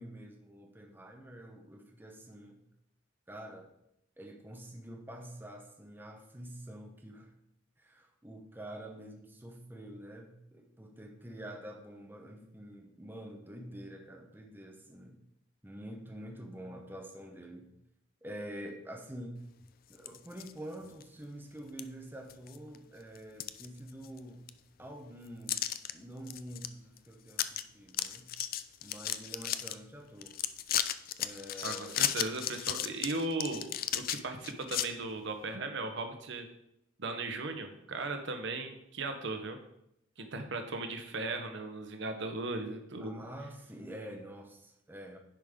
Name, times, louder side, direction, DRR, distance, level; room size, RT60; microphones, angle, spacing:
voice 1, 0.0-2.6 3.3-3.7 4.2-7.3 7.8-15.2 15.6-17.7 18.2-19.4 19.9-24.4 24.8-25.6 25.9-28.3 28.8-30.4 31.2-31.9 43.0-45.2, right 1 dB, 10° right, 2 dB, 0.9 m, -47 dB
sound 1, 19.9-20.5 21.0-21.1 21.8-21.9 22.3-22.8 23.1-24.2 24.5-24.6 25.5-25.9 26.3-26.7 27.0-27.1 27.3-27.6 27.9-29.7 30.2-34.9, left 11 dB, 50° left, 0.4 m, -34 dB
voice 2, 31.6-33.7 33.9-36.5 37.0-39.6 40.2-43.2, right 2 dB, 65° right, 6 dB, 0.9 m, -37 dB
10.0 x 5.2 x 3.7 m, 0.79 s
head